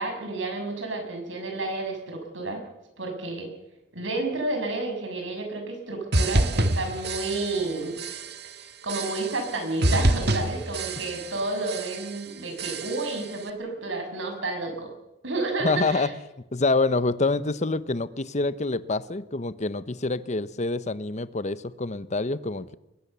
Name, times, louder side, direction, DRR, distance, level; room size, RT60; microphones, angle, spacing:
voice 1, 0.0-2.6 3.0-3.5 3.9-8.0 8.8-14.9 15.2-16.1, right 2 dB, 85° right, 4 dB, 7.1 m, -30 dB
sound 1, 6.1-7.7 8.0-8.5 8.9-9.5 9.8-11.4 11.7-12.2 12.6-13.2, right 1 dB, 60° right, 1.7 m, -27 dB
voice 2, 15.6-16.1 16.5-22.7, left 3 dB, 40° left, 14 dB, 0.9 m, -26 dB
23.0 x 21.5 x 6.9 m, 0.89 s
head